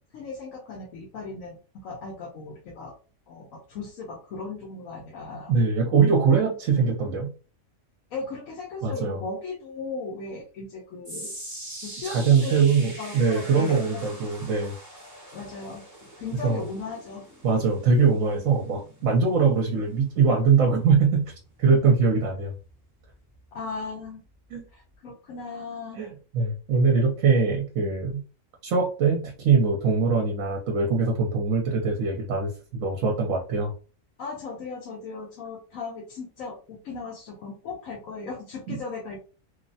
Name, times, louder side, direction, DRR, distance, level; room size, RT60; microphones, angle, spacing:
voice 1, 0.1-2.9 3.3-5.5 8.1-11.3 11.8-14.0 15.3-15.8 16.2-17.2 23.5-24.2 24.7-26.0 34.2-39.2, left 4 dB, 75° left, -1 dB, 1.1 m, -37 dB
voice 2, 5.5-7.3 8.8-9.2 12.0-14.8 16.4-16.6 17.4-21.3 21.6-22.5 24.5-24.6 25.9-28.2 28.6-33.7 38.7-38.8, right 5 dB, 75° right, 1 dB, 1.0 m, -22 dB
sound 1, 11.0-23.4 23.7-24.0 24.7-24.8, right 1 dB, 15° right, 0.9 m, -44 dB
3.0 x 2.0 x 2.6 m, 0.36 s
omnidirectional pair, 1.4 m